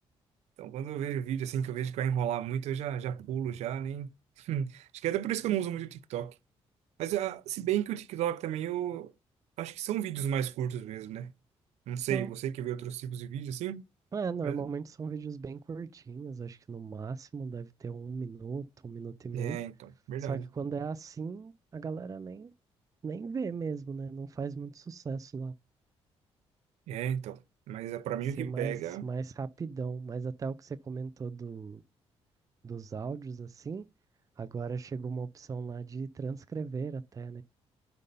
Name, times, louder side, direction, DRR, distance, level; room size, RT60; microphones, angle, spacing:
voice 1, 0.6-4.1 4.4-6.3 7.0-9.1 9.6-11.3 11.9-13.8 14.4-14.6 19.3-20.4 26.9-27.4 27.7-29.1, right 10 dB, 85° right, 0.6 m, -33 dB
voice 2, 12.0-12.3 14.1-19.6 20.3-22.5 23.0-25.5 28.4-28.7 29.0-31.8 32.6-33.9 34.4-37.4, right 5 dB, 30° right, 0.5 m, -37 dB
8.2 x 5.3 x 5.3 m
cardioid pair, 85°, 11 cm